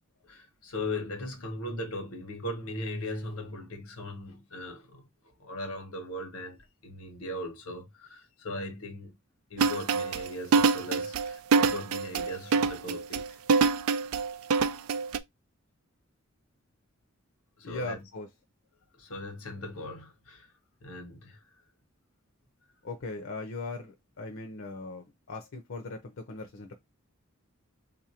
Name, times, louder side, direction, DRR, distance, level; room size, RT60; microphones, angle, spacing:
voice 1, 0.3-5.1 5.4-9.1 9.5-13.4 17.6-18.1 19.0-20.5 20.8-21.4, left 1 dB, 90° left, 1.1 m, -39 dB
sound 1, 9.6-15.2, right 5 dB, 80° right, 0.4 m, -25 dB
voice 2, 17.6-18.3 22.8-26.7, left 3 dB, 65° left, 0.6 m, -39 dB
3.8 x 2.5 x 2.8 m
head